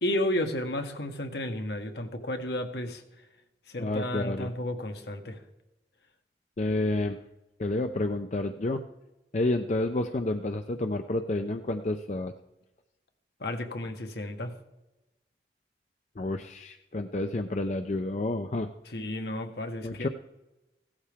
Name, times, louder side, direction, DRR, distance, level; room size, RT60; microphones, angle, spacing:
voice 1, 0.0-3.0 3.7-5.4 13.4-14.5 18.9-20.1, left 1 dB, 70° left, 5 dB, 1.4 m, -32 dB
voice 2, 3.8-4.5 6.6-7.2 7.6-8.8 9.3-12.3 16.2-18.7 19.8-20.1, left 2 dB, 40° left, 7 dB, 0.5 m, -29 dB
16.0 x 13.0 x 3.6 m, 0.98 s
head